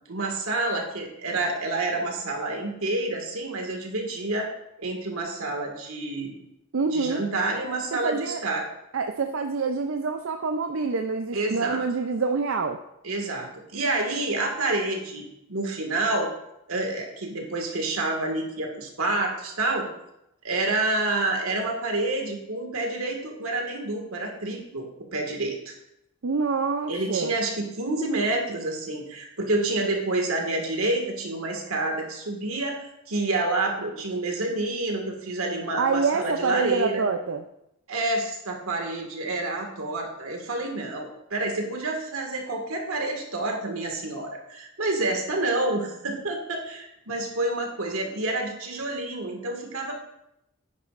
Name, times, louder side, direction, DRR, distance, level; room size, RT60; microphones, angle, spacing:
voice 1, 0.1-4.5 4.8-6.4 6.9-8.7 11.3-11.8 13.0-16.3 16.7-19.9 20.4-25.7 26.9-37.0 37.9-49.9, right 2 dB, 80° right, 2 dB, 1.9 m, -28 dB
voice 2, 6.7-7.2 8.0-8.4 8.9-12.8 26.2-27.3 35.8-37.4, right 4 dB, 65° right, 6 dB, 0.5 m, -26 dB
9.8 x 9.6 x 2.5 m, 0.82 s
head